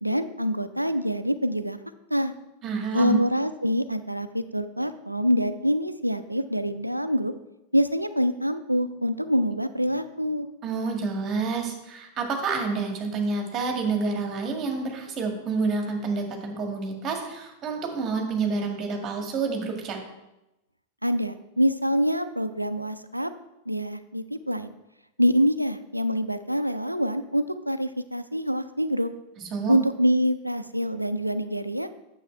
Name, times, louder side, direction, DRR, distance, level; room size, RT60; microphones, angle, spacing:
voice 1, 0.0-1.8 2.1-2.3 2.9-7.3 7.7-10.5 21.0-23.3 23.7-24.7 25.2-29.1 29.7-31.9, equal, 90° right, 12 dB, 0.4 m, -25 dB
voice 2, 2.6-3.2 10.6-20.0 29.4-29.8, right 4 dB, 30° right, 3 dB, 1.8 m, -28 dB
8.8 x 7.0 x 3.3 m, 0.93 s
figure-of-eight pair, 90°, 0 cm